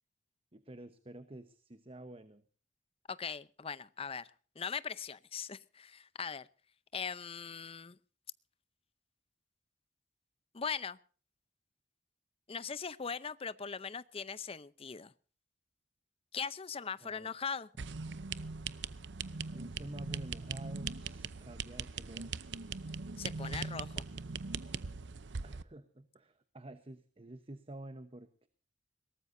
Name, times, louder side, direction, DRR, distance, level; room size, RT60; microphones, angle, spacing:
voice 1, 0.5-2.4 17.0-17.3 19.5-22.3 25.4-28.5, right 1 dB, 30° right, 10 dB, 1.0 m, -49 dB
voice 2, 3.1-4.3 4.6-6.5 6.9-8.0 10.5-11.0 12.5-15.1 16.3-17.7 23.2-24.0, left 6 dB, 35° left, 17 dB, 0.7 m, -40 dB
sound 1, 17.8-25.6, right 5 dB, 85° right, 0.7 m, -41 dB
22.0 x 18.5 x 2.7 m, 0.41 s
head